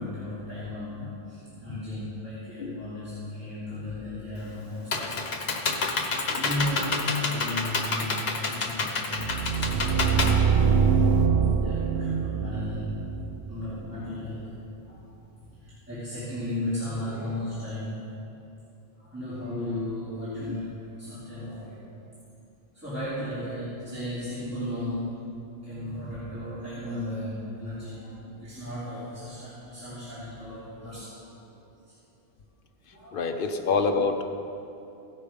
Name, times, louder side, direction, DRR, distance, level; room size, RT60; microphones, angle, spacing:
voice 1, 0.0-5.8 6.3-11.1 11.4-13.1 13.5-14.5 14.9-15.1 15.6-18.1 19.0-21.9 22.7-25.2 25.6-31.5 32.9-33.4, left 1 dB, 15° right, -14 dB, 2.8 m, -35 dB
Computer keyboard, 4.4-11.2, left 4 dB, 85° left, 1.2 m, -29 dB
sound 1, 9.2-14.1, right 6 dB, 75° right, 0.9 m, -24 dB
voice 2, 33.1-34.2, left 4 dB, 65° left, 6 dB, 0.9 m, -27 dB
16.0 x 5.6 x 5.0 m, 2.7 s
omnidirectional pair, 1.0 m